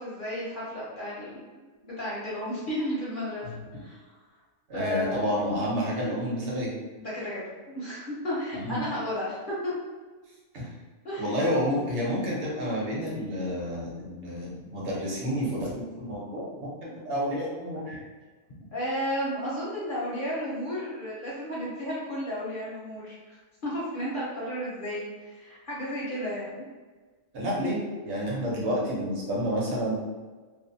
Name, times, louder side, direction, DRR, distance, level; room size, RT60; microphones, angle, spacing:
voice 1, 0.0-1.4 1.8-3.5 3.8-4.0 4.7-5.2 7.0-9.7 11.0-11.4 16.9-17.0 18.7-26.7, equal, 55° left, -7 dB, 0.6 m, -33 dB
voice 2, 4.7-6.7 8.5-8.8 10.5-10.7 11.2-18.0 27.3-29.9, equal, 60° right, -4 dB, 1.0 m, -30 dB
2.5 x 2.1 x 2.5 m, 1.3 s
omnidirectional pair, 1.4 m